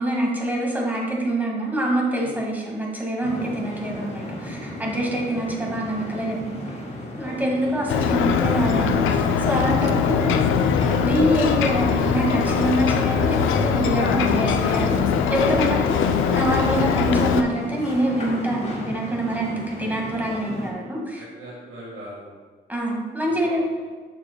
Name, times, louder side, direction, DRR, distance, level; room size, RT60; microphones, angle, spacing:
voice 1, 0.0-6.7 7.2-10.5 11.0-15.0 15.3-15.8 16.3-21.3 22.7-23.6, right 1 dB, 10° right, -2 dB, 1.8 m, -25 dB
sound 1, 3.2-20.7, left 1 dB, 35° left, 1.6 m, -35 dB
voice 2, 3.4-3.8 7.2-7.8 9.5-9.8 13.9-14.7 15.8-16.1 20.4-22.3 23.3-23.6, equal, 75° right, -5 dB, 1.7 m, -40 dB
Ocean, 7.9-17.4, left 7 dB, 85° left, 0.5 m, -21 dB
7.3 x 6.9 x 2.3 m, 1.5 s
cardioid pair, 90°, 20 cm